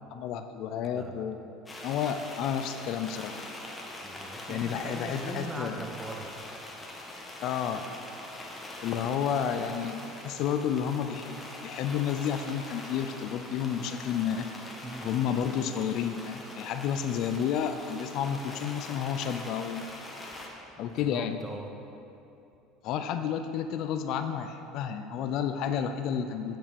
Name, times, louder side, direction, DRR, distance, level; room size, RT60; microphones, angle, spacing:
voice 1, 0.1-1.4 1.8-3.4 4.5-5.8 7.4-7.9 8.8-14.5 15.0-19.8 20.8-21.4 22.8-26.6, left 8 dB, 60° left, 8 dB, 0.4 m, -31 dB
voice 2, 0.9-1.3 4.0-6.3 14.8-15.1 20.8-21.7, right 1 dB, 10° right, 3 dB, 0.8 m, -40 dB
sound 1, 1.7-20.5, left 1 dB, 15° left, 1.2 m, -43 dB
8.7 x 5.4 x 5.2 m, 2.8 s
supercardioid pair, 115°, 0 cm